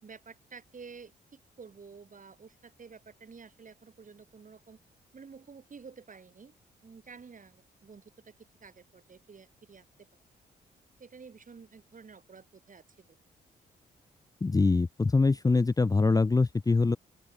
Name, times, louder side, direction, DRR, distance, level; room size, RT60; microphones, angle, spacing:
voice 1, 0.0-4.8 5.1-6.5 6.8-8.3 8.6-10.1 11.0-13.2, right 5 dB, 45° right, 4.7 m, -51 dB
voice 2, 14.4-17.0, left 3 dB, 20° left, 0.6 m, -24 dB
open air
supercardioid pair, 60°, 18 cm